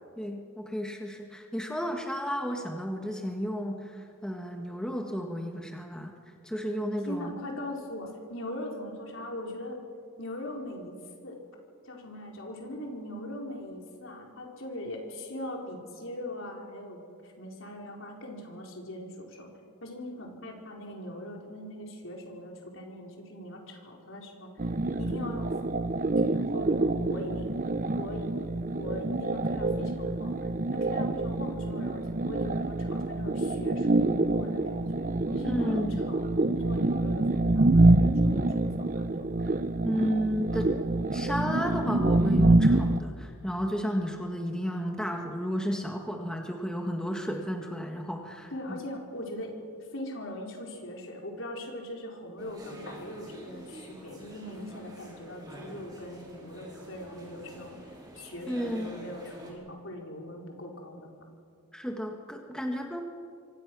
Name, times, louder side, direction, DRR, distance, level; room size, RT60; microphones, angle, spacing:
voice 1, 0.2-6.1 6.4-7.3 35.4-36.0 39.8-48.8 58.5-58.9 61.7-63.0, equal, 5° left, 2 dB, 1.6 m, -32 dB
voice 2, 7.0-9.8 10.2-11.0 11.2-11.4 11.8-19.5 19.8-24.7 25.0-25.5 26.3-27.5 28.0-28.3 28.8-30.3 30.7-39.3 48.5-49.6 49.9-57.8 58.1-61.3, left 1 dB, 65° left, 0 dB, 4.4 m, -40 dB
sound 1, 24.6-43.0, right 2 dB, 35° right, 0.6 m, -26 dB
sound 2, 52.4-59.5, equal, 20° right, 4.9 m, -47 dB
26.5 x 25.0 x 6.2 m, 2.2 s
head